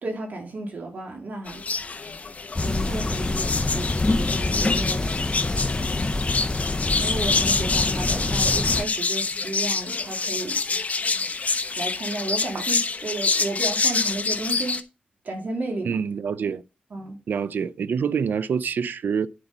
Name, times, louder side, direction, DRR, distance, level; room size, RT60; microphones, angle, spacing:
voice 1, 0.0-1.6 2.6-5.1 5.8-6.2 7.0-10.6 11.8-14.8 15.2-16.0 16.9-17.2, right 2 dB, 60° right, 3.0 m, -33 dB
sound 1, 1.5-14.8, left 4 dB, 50° left, 0.9 m, -26 dB
sound 2, 2.6-8.8, left 2 dB, 25° left, 0.8 m, -26 dB
voice 2, 15.8-16.6 17.3-19.3, right 6 dB, 80° right, 0.5 m, -26 dB
9.9 x 5.2 x 5.4 m
cardioid pair, 70°, 3 cm